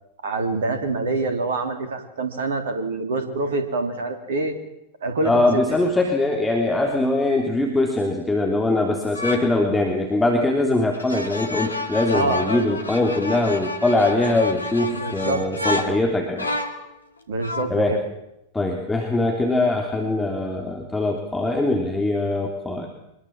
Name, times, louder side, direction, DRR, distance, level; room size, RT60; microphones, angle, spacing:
voice 1, 0.2-4.6 5.0-5.6 12.1-12.6 14.9-16.0 17.3-18.0, right 3 dB, 65° right, 8 dB, 3.3 m, -26 dB
voice 2, 5.2-16.5 17.7-18.0 18.5-22.9, left 2 dB, 10° left, 2 dB, 3.2 m, -22 dB
sound 1, 9.1-9.5 10.9-16.9 17.4-17.8, left 2 dB, 80° left, 2.4 m, -30 dB
25.0 x 21.5 x 7.5 m, 0.86 s
figure-of-eight pair, 90°, 0 cm